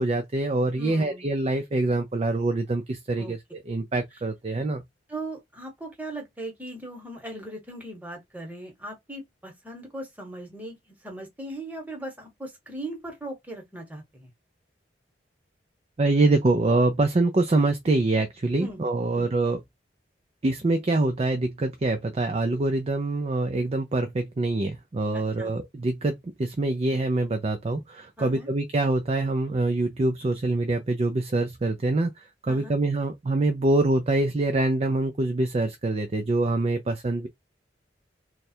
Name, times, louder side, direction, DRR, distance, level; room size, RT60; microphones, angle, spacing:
voice 1, 0.0-4.8 16.0-19.6 20.4-37.3, right 2 dB, 35° right, 0.4 m, -25 dB
voice 2, 0.8-1.3 3.2-3.3 3.8-3.9 5.1-14.3 18.6-18.8 19.1-19.3 25.1-25.5 28.2-28.5 32.5-32.8, right 1 dB, 10° right, 1.2 m, -39 dB
3.2 x 2.3 x 4.3 m
head